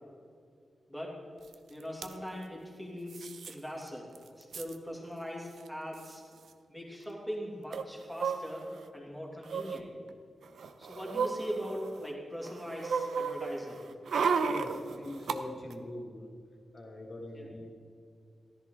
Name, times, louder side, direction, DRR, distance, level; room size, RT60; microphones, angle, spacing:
sound 1, 1.5-1.6 1.8-2.1 3.1-3.5 3.9-4.0 4.2-4.8 5.6-5.7 5.9-6.1 7.7-8.9 9.4-9.8 10.4-12.1 12.4-15.4 15.7-15.8, right 5 dB, 85° right, 0.7 m, -34 dB
voice 1, 1.7-4.1 4.4-6.2 6.7-8.7 8.9-9.9 10.8-13.8 17.3-17.5, equal, ahead, -3 dB, 2.5 m, -41 dB
voice 2, 14.5-16.3 16.7-17.7, left 1 dB, 40° left, 1 dB, 2.0 m, -42 dB
14.0 x 13.0 x 3.8 m, 2.3 s
wide cardioid pair, 170°, 0 cm